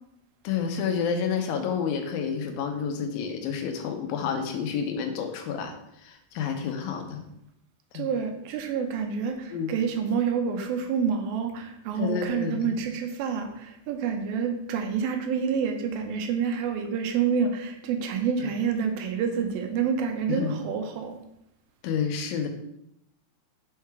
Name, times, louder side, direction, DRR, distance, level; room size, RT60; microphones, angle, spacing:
voice 1, 0.4-5.7 6.0-7.2 7.9-8.1 9.5-9.7 12.0-12.8 18.4-18.5 20.3-20.6 21.8-22.5, left 6 dB, 85° left, 5 dB, 2.6 m, -29 dB
voice 2, 7.9-21.2, right 6 dB, 85° right, 5 dB, 2.7 m, -28 dB
6.4 x 4.7 x 4.7 m, 0.81 s
omnidirectional pair, 4.1 m